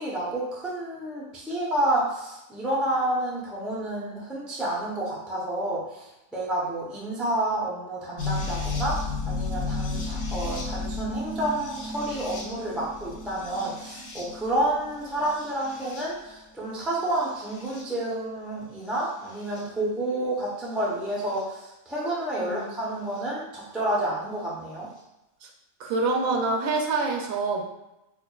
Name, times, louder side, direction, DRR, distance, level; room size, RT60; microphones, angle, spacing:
voice 1, 0.0-24.9, right 1 dB, ahead, -6 dB, 0.4 m, -29 dB
sound 1, 8.2-16.3 17.0-17.8 19.0-19.6 21.4-21.5 23.2-23.3, left 3 dB, 85° left, 1.2 m, -33 dB
voice 2, 22.4-22.8 25.4-25.5 25.8-27.6, right 3 dB, 75° right, 1 dB, 1.0 m, -26 dB
4.7 x 2.4 x 2.3 m, 0.93 s
omnidirectional pair, 1.5 m